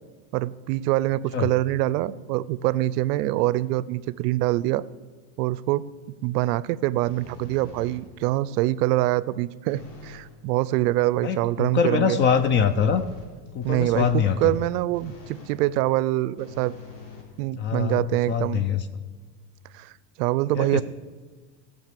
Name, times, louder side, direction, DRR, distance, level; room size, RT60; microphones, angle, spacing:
voice 1, 0.3-4.8 5.4-5.8 6.2-12.2 13.6-16.7 17.4-18.6 19.7-19.9 20.2-20.8, right 16 dB, 80° right, 19 dB, 0.6 m, -24 dB
sound 1, 7.1-8.3 9.7-10.3 12.0-15.6 16.4-17.9, left 2 dB, 60° left, 3.4 m, -45 dB
voice 2, 11.2-13.0 13.5-14.5 17.6-18.8 20.5-20.8, left 7 dB, 25° left, 11 dB, 0.3 m, -23 dB
16.5 x 5.5 x 7.5 m, 1.4 s
supercardioid pair, 145°, 47 cm